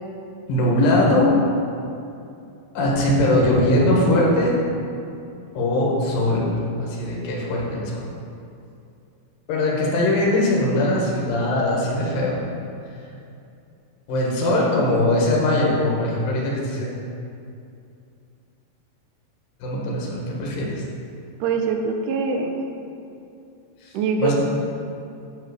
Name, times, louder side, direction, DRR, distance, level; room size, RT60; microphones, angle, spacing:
voice 1, 0.5-1.3 2.7-4.6 5.5-8.1 9.5-12.4 14.1-16.9 19.6-20.8 23.8-23.9 24.2-24.3, left 1 dB, 65° left, -4 dB, 3.2 m, -21 dB
voice 2, 21.4-22.7 23.9-24.3, right 5 dB, 80° right, 3 dB, 1.8 m, -24 dB
8.6 x 5.7 x 6.5 m, 2.6 s
omnidirectional pair, 4.5 m